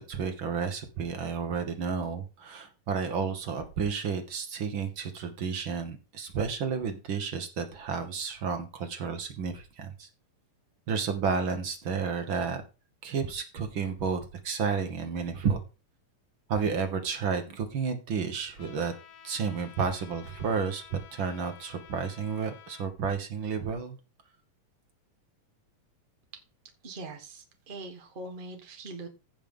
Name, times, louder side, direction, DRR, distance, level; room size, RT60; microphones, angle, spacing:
voice 1, 0.0-10.1 10.9-12.6 13.0-15.6 16.5-18.9 19.2-23.9, right 6 dB, 55° right, 6 dB, 1.5 m, -31 dB
Trumpet, 18.6-22.9, left 8 dB, 85° left, 3.1 m, -51 dB
voice 2, 26.8-29.1, right 2 dB, 85° right, 4 dB, 0.4 m, -42 dB
16.0 x 5.3 x 3.8 m, 0.31 s
omnidirectional pair, 3.7 m